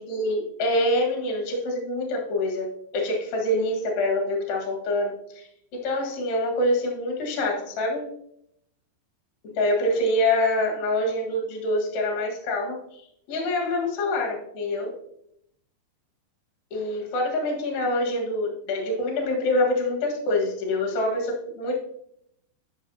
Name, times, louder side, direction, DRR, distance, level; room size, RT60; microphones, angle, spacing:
voice 1, 0.0-8.0 9.5-12.8 13.3-14.9 16.7-21.8, left 1 dB, 55° left, 0 dB, 2.1 m, -25 dB
11.5 x 6.0 x 2.7 m, 0.74 s
omnidirectional pair, 5.3 m